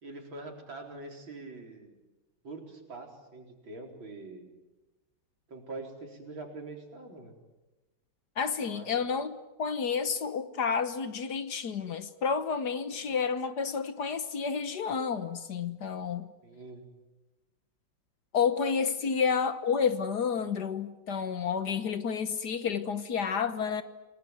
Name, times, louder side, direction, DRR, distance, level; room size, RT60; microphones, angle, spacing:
voice 1, 0.0-2.0 2.4-4.5 5.5-7.3 8.6-8.9 12.9-13.0 16.4-16.9 19.0-19.1, right 3 dB, 75° right, 4.9 m, -44 dB
voice 2, 8.4-16.3 18.3-23.8, left 6 dB, 60° left, 1.6 m, -30 dB
28.5 x 20.5 x 9.3 m
omnidirectional pair, 2.2 m